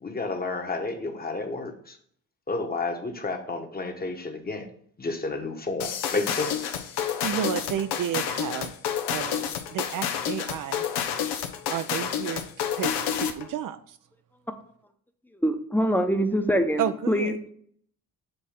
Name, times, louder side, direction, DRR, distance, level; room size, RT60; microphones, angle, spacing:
voice 1, 0.0-2.0 2.5-4.7 5.0-6.5, left 3 dB, 25° left, 3 dB, 1.1 m, -31 dB
sound 1, 5.8-13.5, left 8 dB, 90° left, 0.7 m, -29 dB
voice 2, 7.2-8.7 9.1-10.9 11.7-14.0 16.8-17.4, right 9 dB, 55° right, 11 dB, 0.5 m, -31 dB
voice 3, 15.4-17.4, equal, 5° left, 7 dB, 0.8 m, -24 dB
6.7 x 2.7 x 5.7 m, 0.63 s
supercardioid pair, 60°, 38 cm